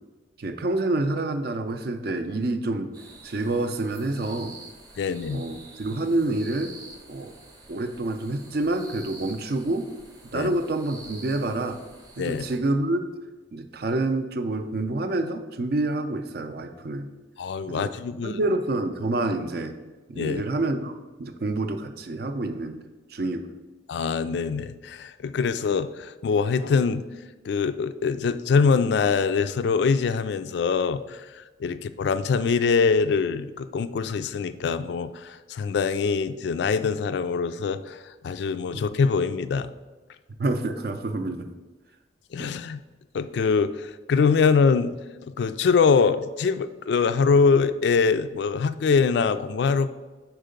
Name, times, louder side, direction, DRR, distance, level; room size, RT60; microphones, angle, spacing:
voice 1, 0.4-2.9 3.2-4.6 5.3-6.7 7.1-7.3 7.7-9.9 10.3-11.8 12.2-13.1 13.5-17.1 17.7-17.9 18.2-19.8 20.1-20.9 21.2-22.8 23.1-23.4 31.7-31.8 38.7-38.8 40.4-41.5 42.4-42.5, right 2 dB, 55° right, 8 dB, 0.5 m, -27 dB
sound 1, 2.9-12.6, right 3 dB, 20° right, 0.8 m, -47 dB
voice 2, 5.0-5.4 10.3-10.5 12.2-12.4 17.4-18.4 20.2-20.5 23.9-27.0 27.4-39.7 42.3-42.8 43.1-44.9 45.4-49.9, left 5 dB, 65° left, 12 dB, 0.3 m, -23 dB
4.6 x 4.6 x 5.1 m, 1.2 s
head